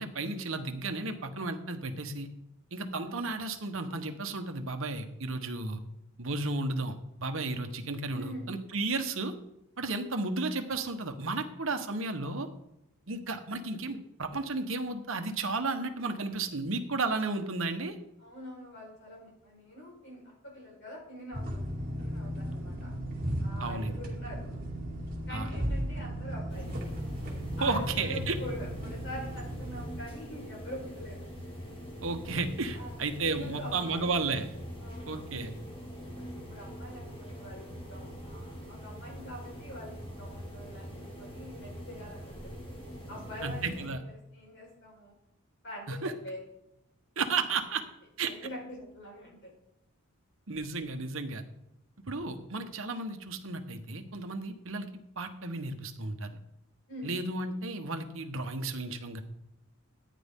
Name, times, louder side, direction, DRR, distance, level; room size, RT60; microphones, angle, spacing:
voice 1, 0.0-2.3 2.7-5.8 6.2-6.9 7.2-9.3 9.8-12.5 13.1-18.0 23.6-23.9 25.3-25.5 27.6-28.4 32.0-34.5 35.1-35.5 43.4-44.0 45.9-46.1 47.2-47.8 48.2-48.3 50.5-51.4 52.1-54.9 55.2-56.3 57.0-59.2, right 3 dB, 65° right, 7 dB, 1.1 m, -33 dB
voice 2, 8.1-8.5 18.2-21.7 22.0-22.9 23.4-24.6 25.3-26.7 27.6-31.3 32.7-33.0 33.3-34.1 34.8-35.3 35.9-42.7 43.1-45.2 45.6-46.4 48.2-49.5 56.9-57.2, equal, 55° left, -2 dB, 4.7 m, -45 dB
sound 1, 21.3-29.9, equal, 40° right, 2.5 m, -36 dB
sound 2, 26.5-43.9, equal, 25° left, 1.9 m, -43 dB
14.0 x 9.3 x 3.7 m, 0.85 s
head